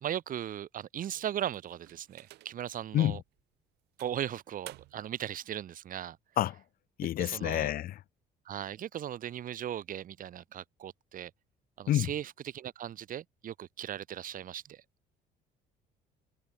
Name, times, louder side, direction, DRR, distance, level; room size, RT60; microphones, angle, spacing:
voice 1, 0.0-3.2 4.0-6.2 7.2-7.7 8.5-11.3 11.8-14.8, right 10 dB, 55° right, 2.0 m, -38 dB
sound 1, 1.0-2.7 3.3-3.4 4.0-5.2, right 18 dB, 85° right, 2.9 m, -53 dB
voice 2, 7.0-8.0 11.9-12.1, left 13 dB, 60° left, 0.7 m, -28 dB
cardioid pair, 110°, 17 cm